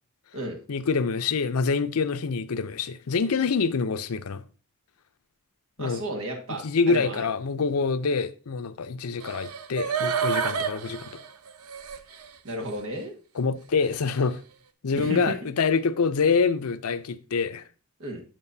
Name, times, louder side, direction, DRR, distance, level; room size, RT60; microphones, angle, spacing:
voice 1, 0.7-4.4 5.8-6.0 6.6-11.1 13.3-14.4 14.8-17.6, left 5 dB, 90° left, 0.6 m, -26 dB
voice 2, 5.8-7.3 12.4-13.1 14.9-15.3 18.0-18.2, right 1 dB, 65° right, 1.7 m, -33 dB
sound 1, 9.2-12.3 12.7-12.8, right 7 dB, 85° right, 0.7 m, -29 dB
9.0 x 7.2 x 2.7 m
head